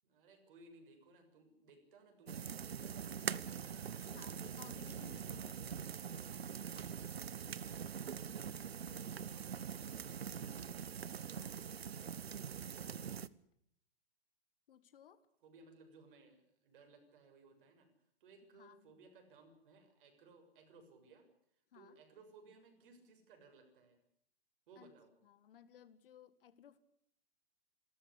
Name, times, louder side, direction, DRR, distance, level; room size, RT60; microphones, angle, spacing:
voice 1, 0.0-4.5 7.9-8.5 8.8-10.9 15.4-17.9 18.2-21.3 21.7-24.0 24.7-25.1, right 3 dB, 55° right, 5 dB, 6.8 m, -62 dB
sound 1, 2.3-13.3, right 7 dB, 75° right, 1.0 m, -43 dB
voice 2, 4.1-5.9 8.9-9.1 11.4-11.6 14.7-15.3 18.5-19.0 21.7-22.0 24.8-25.0 25.2-26.8, left 8 dB, 60° left, 14 dB, 1.9 m, -59 dB
27.5 x 14.0 x 9.9 m, 0.71 s
figure-of-eight pair, 110°, 31 cm